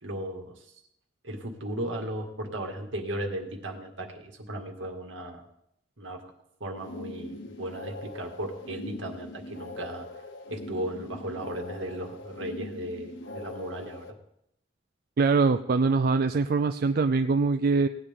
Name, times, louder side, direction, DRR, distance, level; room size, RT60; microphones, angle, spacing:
voice 1, 0.0-0.6 1.2-5.4 6.0-6.2 6.6-10.1 10.5-14.1, right 1 dB, 75° right, 2 dB, 1.9 m, -36 dB
sound 1, 6.7-14.1, left 2 dB, 70° left, 1.3 m, -41 dB
voice 2, 15.2-17.9, right 4 dB, 50° right, 8 dB, 0.4 m, -23 dB
18.0 x 10.0 x 3.6 m, 0.77 s
head